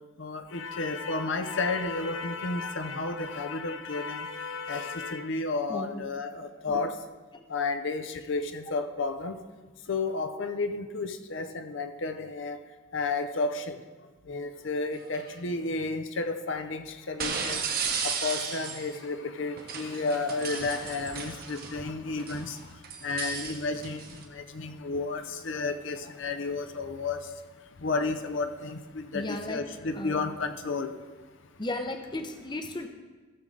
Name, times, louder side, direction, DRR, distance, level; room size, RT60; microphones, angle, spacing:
voice 1, 0.2-7.0 7.5-9.4 9.9-12.6 12.9-13.8 14.3-17.6 18.0-22.6 23.0-24.0 24.3-27.2 27.8-30.9, left 3 dB, 65° left, 8 dB, 0.6 m, -32 dB
voice 2, 5.7-6.0 6.7-6.8 7.3-7.4 29.1-29.6 29.9-30.2 31.6-32.9, left 1 dB, 20° left, 6 dB, 0.6 m, -35 dB
sound 1, 15.0-15.3 17.2-18.9 19.6-21.8 22.2-24.2, right 6 dB, 45° right, 1.0 m, -34 dB
15.0 x 6.7 x 3.8 m, 1.3 s
head